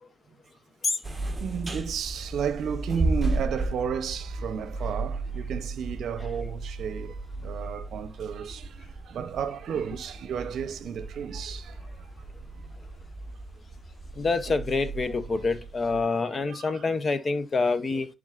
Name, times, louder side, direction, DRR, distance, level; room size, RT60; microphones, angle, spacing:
sound 1, 1.0-16.0, right 2 dB, 20° right, 1.1 m, -34 dB
voice 1, 1.4-12.1 15.3-15.4 16.5-16.8, right 7 dB, 70° right, 0.7 m, -33 dB
voice 2, 14.2-18.1, left 3 dB, 40° left, 0.7 m, -27 dB
10.5 x 3.8 x 2.5 m
cardioid pair, 90°, 0 cm